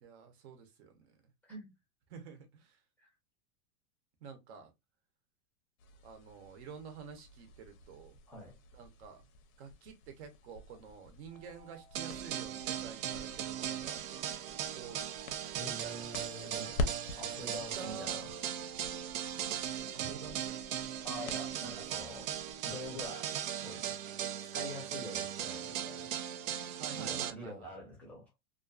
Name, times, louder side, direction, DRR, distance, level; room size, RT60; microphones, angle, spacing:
voice 1, 0.0-1.2 2.1-2.8 4.2-4.7 6.0-8.2 8.7-9.3 9.6-14.0 14.7-15.1 15.8-16.9 17.4-18.3 19.9-20.6 26.8-27.7, right 6 dB, 50° right, 0.8 m, -49 dB
sound 1, 5.8-23.1, left 2 dB, 75° left, 0.7 m, -46 dB
sound 2, 11.3-19.7, right 5 dB, 15° right, 0.9 m, -61 dB
sound 3, 11.9-27.3, right 10 dB, 70° right, 0.5 m, -38 dB
voice 2, 15.5-16.7 17.2-18.3 21.0-22.3 22.6-23.9 24.5-26.4 26.9-28.3, left 1 dB, 5° left, 0.6 m, -46 dB
2.5 x 2.5 x 2.2 m
supercardioid pair, 160°, 43 cm